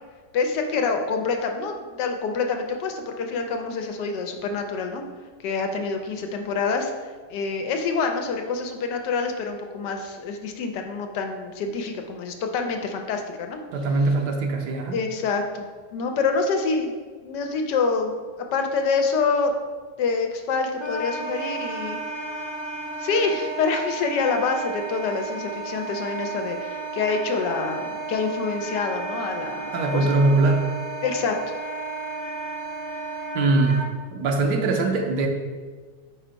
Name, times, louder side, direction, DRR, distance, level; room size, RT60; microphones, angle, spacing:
voice 1, 0.3-5.0 5.4-6.9 7.3-13.6 14.9-15.7 15.9-17.0 17.2-18.2 18.5-19.5 20.0-22.0 23.0-30.1 31.0-31.4, left 4 dB, 80° left, 4 dB, 1.3 m, -26 dB
voice 2, 13.7-15.0 29.7-30.7 33.3-35.3, right 3 dB, 75° right, 2 dB, 1.3 m, -22 dB
Wind instrument woodwind instrument, 20.8-33.9, right 4 dB, 55° left, 0.4 m, -33 dB
4.7 x 4.4 x 5.0 m, 1.5 s
omnidirectional pair, 1.8 m